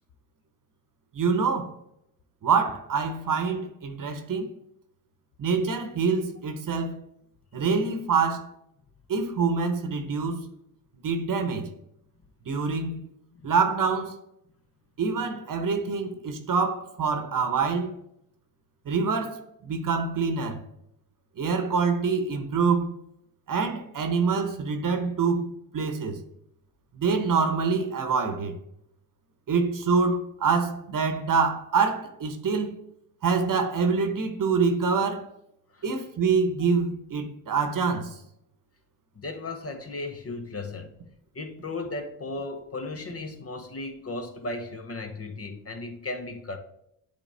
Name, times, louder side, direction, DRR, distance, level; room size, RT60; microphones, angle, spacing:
voice 1, 1.1-1.7 2.4-4.5 5.4-7.0 7.5-8.5 9.1-10.5 11.0-11.7 12.5-13.0 13.4-14.2 15.0-17.9 18.9-20.6 21.4-22.9 23.5-26.2 26.9-28.5 29.5-32.8 33.2-35.2 35.8-38.2, right 5 dB, 45° right, 1.1 m, -25 dB
voice 2, 39.2-40.9 41.3-46.6, left 2 dB, 30° left, 0.8 m, -35 dB
8.3 x 3.5 x 3.4 m
supercardioid pair, 60°, 46 cm